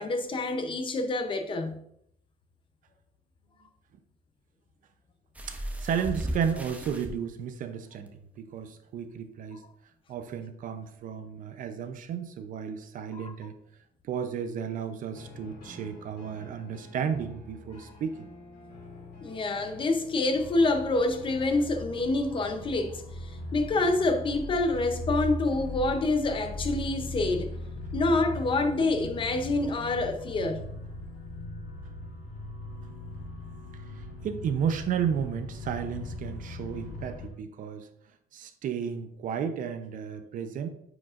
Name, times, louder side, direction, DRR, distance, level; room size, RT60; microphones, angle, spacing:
voice 1, 0.0-1.8 13.1-13.3 17.8-17.9 19.2-27.5 27.9-30.6, left 2 dB, 30° left, 0.6 m, -27 dB
sound 1, 5.3-7.1 8.1-8.2 8.6-8.7, right 1 dB, 10° right, 0.7 m, -35 dB
voice 2, 5.5-9.6 10.1-13.6 14.1-18.3 34.2-37.9 38.3-40.7, right 7 dB, 50° right, 0.6 m, -33 dB
sound 2, 15.1-21.6, left 3 dB, 60° left, 2.8 m, -49 dB
sound 3, 20.3-37.3, left 1 dB, 85° left, 2.0 m, -39 dB
9.2 x 4.9 x 2.5 m
cardioid pair, 155°, 17 cm